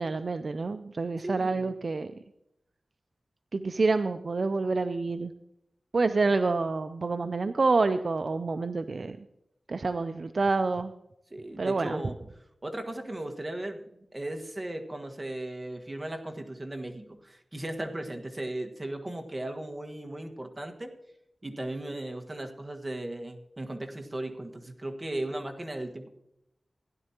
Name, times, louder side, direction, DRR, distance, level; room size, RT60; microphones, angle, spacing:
voice 1, 0.0-2.1 3.5-5.3 5.9-9.2 9.7-10.9 11.6-12.0, right 3 dB, 65° right, 10 dB, 0.4 m, -27 dB
voice 2, 1.2-1.7 11.3-12.2 12.6-20.9 21.4-26.1, right 1 dB, 30° right, 4 dB, 1.6 m, -37 dB
16.0 x 11.0 x 2.9 m, 0.81 s
wide cardioid pair, 60°, 0 cm